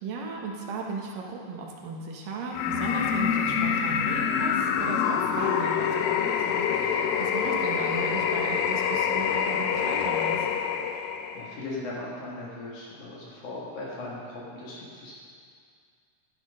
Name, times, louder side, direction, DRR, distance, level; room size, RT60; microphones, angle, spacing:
voice 1, 0.0-10.5, right 4 dB, 80° right, 0 dB, 3.1 m, -36 dB
deep insane laugh, 2.5-11.5, left 7 dB, 90° left, 2.4 m, -26 dB
voice 2, 11.3-15.2, left 2 dB, 65° left, -6 dB, 3.2 m, -38 dB
12.0 x 11.0 x 5.5 m, 2.2 s
omnidirectional pair, 3.9 m